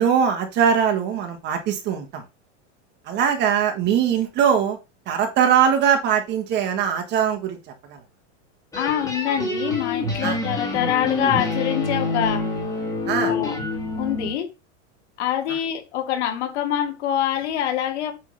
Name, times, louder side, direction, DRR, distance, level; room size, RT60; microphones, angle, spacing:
voice 1, 0.0-2.2 3.0-4.8 5.1-7.6 7.9-8.0 10.2-10.4 13.1-13.3, right 8 dB, 30° right, 1.4 m, -21 dB
voice 2, 8.7-12.4 13.2-13.5 14.0-14.5 15.2-18.1, left 10 dB, 65° left, 2.3 m, -25 dB
sound 1, 8.7-14.3, left 2 dB, 10° left, 2.1 m, -27 dB
8.3 x 3.6 x 5.4 m
supercardioid pair, 160°, 36 cm